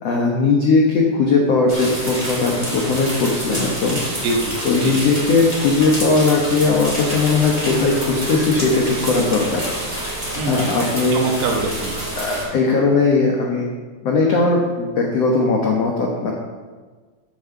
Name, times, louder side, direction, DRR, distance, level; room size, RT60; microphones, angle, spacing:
voice 1, 0.0-4.0 4.6-9.6 10.3-11.2 12.2-13.7 14.0-16.3, left 3 dB, 80° left, -1 dB, 1.4 m, -18 dB
sound 1, 1.7-12.4, right 1 dB, 5° right, 3.0 m, -28 dB
voice 2, 4.2-4.9 10.4-11.9, right 3 dB, 80° right, 1 dB, 3.3 m, -24 dB
8.7 x 7.3 x 7.2 m, 1.4 s
omnidirectional pair, 4.8 m